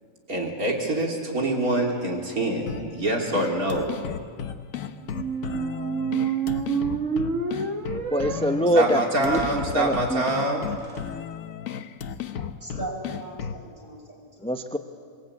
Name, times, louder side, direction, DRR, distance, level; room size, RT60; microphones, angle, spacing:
voice 1, 0.3-4.0 8.7-10.7, right 2 dB, 85° right, 0 dB, 3.4 m, -25 dB
sound 1, 2.7-13.7, left 8 dB, 70° left, 1.3 m, -35 dB
sound 2, 5.1-11.0, right 6 dB, 60° right, 1.9 m, -30 dB
voice 2, 8.1-9.4 9.7-10.2 14.4-14.8, equal, 5° left, 6 dB, 0.7 m, -23 dB
voice 3, 12.4-14.5, right 2 dB, 35° right, -2 dB, 7.3 m, -38 dB
26.0 x 23.0 x 8.6 m, 2.1 s
omnidirectional pair, 1.5 m